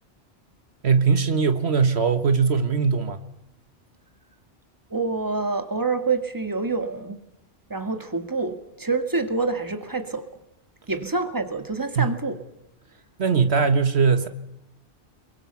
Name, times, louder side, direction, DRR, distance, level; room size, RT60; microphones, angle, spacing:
voice 1, 0.8-3.2 12.0-12.1 13.2-14.3, right 5 dB, 75° right, 1.6 m, -20 dB
voice 2, 4.9-7.2 7.7-10.3 10.9-12.4, right 3 dB, 20° right, 2.0 m, -27 dB
26.0 x 22.5 x 7.1 m
omnidirectional pair, 1.1 m